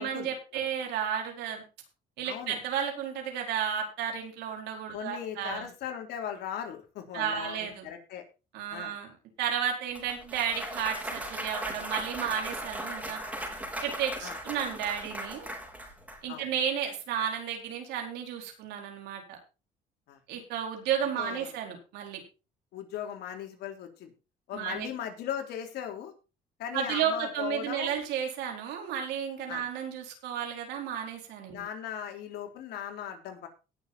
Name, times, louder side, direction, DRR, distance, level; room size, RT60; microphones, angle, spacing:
voice 1, 0.0-1.6 2.2-5.7 7.1-7.9 8.5-9.1 9.4-13.2 13.8-15.5 16.2-19.2 20.3-22.2 24.5-24.9 26.7-31.6, right 8 dB, 85° right, 2 dB, 4.6 m, -33 dB
voice 2, 2.2-2.6 4.9-8.2 8.7-8.9 14.2-14.3 16.3-16.5 20.1-20.2 21.2-21.5 22.7-24.1 24.5-26.1 26.6-28.0 29.5-29.6 31.5-33.5, left 9 dB, 75° left, 4 dB, 3.5 m, -38 dB
Clapping / Cheering / Applause, 10.0-16.2, right 1 dB, 10° right, 4.3 m, -38 dB
18.0 x 7.2 x 4.3 m, 0.31 s
cardioid pair, 110°, 17 cm